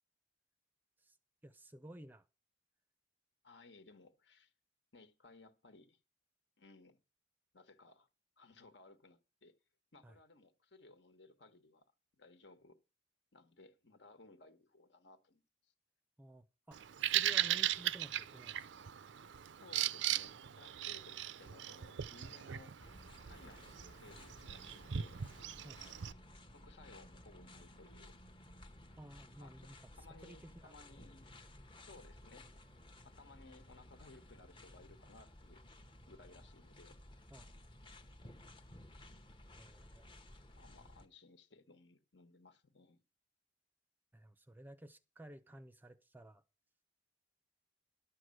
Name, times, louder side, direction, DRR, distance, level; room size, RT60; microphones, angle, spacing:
voice 1, 1.4-2.2 10.0-10.2 16.2-18.9 25.6-25.9 29.0-29.7 30.2-30.7 37.3-37.5 39.5-40.0 44.1-46.4, equal, 10° right, 0.5 m, -54 dB
voice 2, 3.4-4.5 4.9-6.0 6.6-7.0 7.5-8.1 8.4-9.6 9.9-11.9 12.2-12.8 13.3-15.7 19.6-22.7 23.3-25.2 26.5-28.1 29.4-29.7 29.9-31.3 31.9-32.5 33.0-35.6 36.1-37.0 40.6-43.0, left 3 dB, 70° left, 1.4 m, -60 dB
Bird vocalization bird call bird song, 16.7-26.1, right 11 dB, 80° right, 0.5 m, -38 dB
sound 1, 22.8-41.1, left 1 dB, 25° left, 0.9 m, -57 dB
11.5 x 6.5 x 7.7 m
head